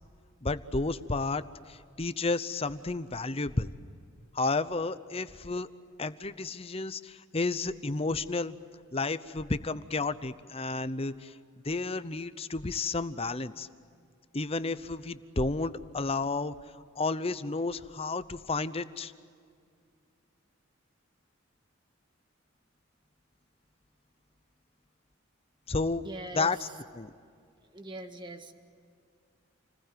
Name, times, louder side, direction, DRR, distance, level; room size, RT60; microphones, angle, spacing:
voice 1, 0.4-3.7 4.3-5.7 6.0-8.6 8.9-11.4 11.6-13.7 14.3-16.5 17.0-19.1 25.7-26.0 26.3-26.6 26.9-27.1, left 3 dB, 30° left, 13 dB, 0.8 m, -31 dB
voice 2, 26.0-26.7 27.6-28.5, right 1 dB, 25° right, 6 dB, 1.8 m, -42 dB
29.0 x 20.5 x 9.3 m, 2.3 s
head